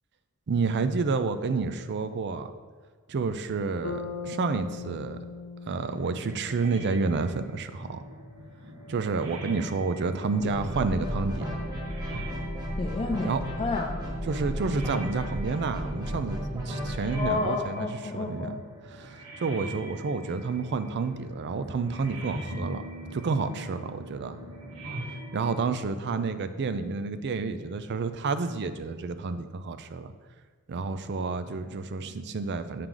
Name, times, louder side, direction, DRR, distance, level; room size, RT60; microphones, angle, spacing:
voice 1, 0.5-2.5 3.1-5.2 5.7-8.0 8.9-11.5 13.2-13.4 14.3-17.9 18.1-18.5 18.9-22.8 23.1-24.4 25.3-30.1 30.7-32.9, right 4 dB, 50° right, 11 dB, 0.4 m, -30 dB
Bass guitar, 3.8-8.2, left 4 dB, 75° left, 0.9 m, -40 dB
sound 1, 5.7-25.6, right 1 dB, 80° right, 1.2 m, -43 dB
sound 2, 10.4-17.3, equal, 20° right, 1.3 m, -33 dB
voice 2, 12.8-14.0 17.1-18.6, left 3 dB, 25° left, 1 dB, 0.3 m, -30 dB
6.6 x 5.9 x 3.8 m, 1.4 s
head